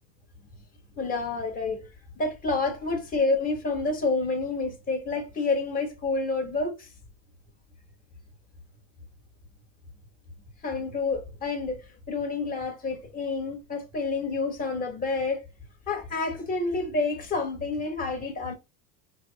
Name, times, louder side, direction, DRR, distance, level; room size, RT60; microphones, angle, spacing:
voice 1, 1.0-1.9 2.1-6.9 10.6-11.8 12.1-15.4 15.9-18.5, left 3 dB, 25° left, 1.2 m, -28 dB
4.7 x 2.0 x 2.7 m
cardioid pair, 145°, 34 cm